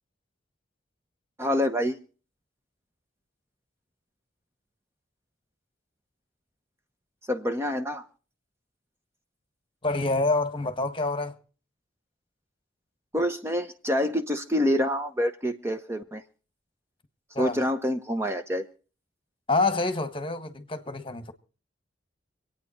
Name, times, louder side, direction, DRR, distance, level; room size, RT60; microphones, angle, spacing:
voice 1, 1.4-2.0 7.3-8.0 13.1-16.2 17.4-18.7, equal, 15° right, 0.9 m, -27 dB
voice 2, 9.8-11.4 17.3-17.6 19.5-21.3, left 3 dB, 30° left, 1.4 m, -27 dB
26.0 x 9.2 x 4.3 m
head